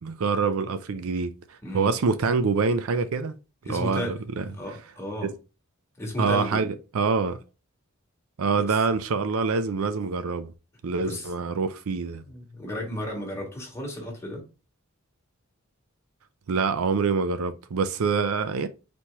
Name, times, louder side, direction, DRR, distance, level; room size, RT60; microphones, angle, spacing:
voice 1, 0.0-1.3 1.7-3.3 3.7-4.4 6.2-7.4 8.4-10.5 10.8-12.2 16.5-18.7, right 4 dB, 70° right, 0.5 m, -25 dB
voice 2, 1.6-1.9 3.6-4.2 4.6-5.3 6.0-6.7 8.6-8.7 11.0-11.3 12.2-14.5, left 1 dB, 15° left, 1.6 m, -33 dB
4.3 x 3.1 x 3.4 m
head